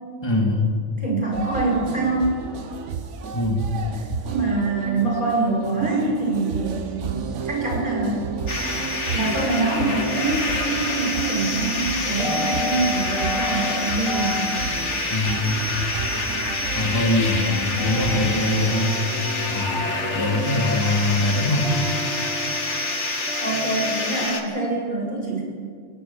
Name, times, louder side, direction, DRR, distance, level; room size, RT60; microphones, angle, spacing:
voice 1, 0.2-0.7 3.3-3.7 15.1-15.7 16.7-18.9 19.5-19.9 20.1-21.8, left 2 dB, 20° left, -1 dB, 3.0 m, -22 dB
voice 2, 1.0-2.4 4.2-8.3 9.1-14.5 23.4-25.4, right 3 dB, 45° right, -2 dB, 7.2 m, -25 dB
sound 1, 1.3-18.3, right 6 dB, 80° right, 1.4 m, -32 dB
sound 2, 8.5-24.4, left 2 dB, 70° left, 2.5 m, -27 dB
sound 3, 12.2-14.9 17.6-21.1 21.5-24.3, left 2 dB, ahead, 2.3 m, -33 dB
21.0 x 19.0 x 7.4 m, 2.1 s
omnidirectional pair, 1.2 m